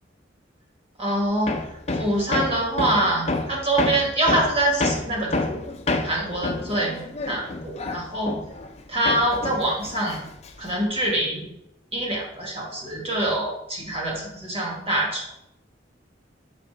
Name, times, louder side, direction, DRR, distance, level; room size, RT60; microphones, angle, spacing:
voice 1, 1.0-5.4 6.0-8.4 8.9-10.2 10.6-11.5 11.9-15.3, right 1 dB, 30° right, -2 dB, 2.0 m, -25 dB
Hammer, 1.5-8.8 9.0-10.8, left 2 dB, 35° left, 0.6 m, -28 dB
6.7 x 5.7 x 3.3 m, 0.84 s
head